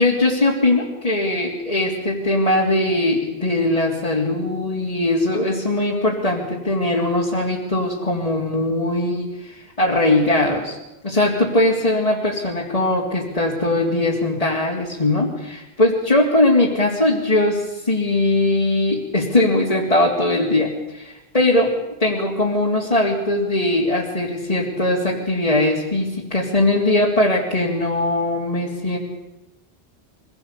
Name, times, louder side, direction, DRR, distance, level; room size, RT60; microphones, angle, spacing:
voice 1, 0.0-10.8 11.0-21.7 22.0-29.0, left 1 dB, 35° left, -5 dB, 3.4 m, -20 dB
24.5 x 17.0 x 8.4 m, 0.97 s
omnidirectional pair, 1.1 m